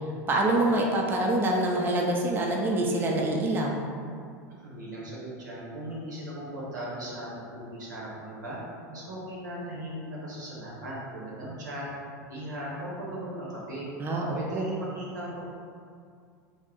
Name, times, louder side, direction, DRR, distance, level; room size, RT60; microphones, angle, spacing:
voice 1, 0.3-3.8 14.0-14.7, right 1 dB, 20° right, -1 dB, 0.4 m, -26 dB
voice 2, 4.6-8.6 8.9-11.9 12.3-13.9 14.3-15.5, right 1 dB, 90° right, -5 dB, 0.8 m, -38 dB
2.5 x 2.0 x 3.7 m, 2.3 s
hypercardioid pair, 95°, 9 cm